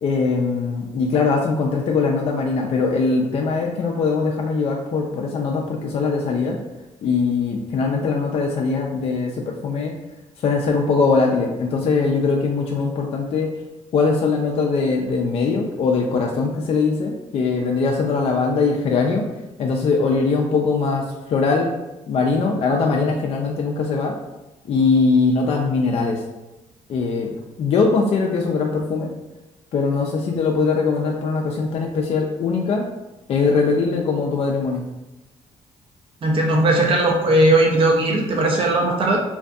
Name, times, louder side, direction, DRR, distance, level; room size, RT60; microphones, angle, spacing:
voice 1, 0.0-6.6 7.0-9.9 10.4-13.5 13.9-19.2 19.6-21.0 21.3-21.7 22.1-24.1 24.7-26.2 26.9-29.1 29.7-32.9 33.3-34.8, left 4 dB, 55° left, 0 dB, 0.4 m, -21 dB
voice 2, 36.2-39.2, right 1 dB, 45° right, 0 dB, 0.6 m, -18 dB
2.6 x 2.4 x 2.3 m, 1.0 s
cardioid pair, 85°, 13 cm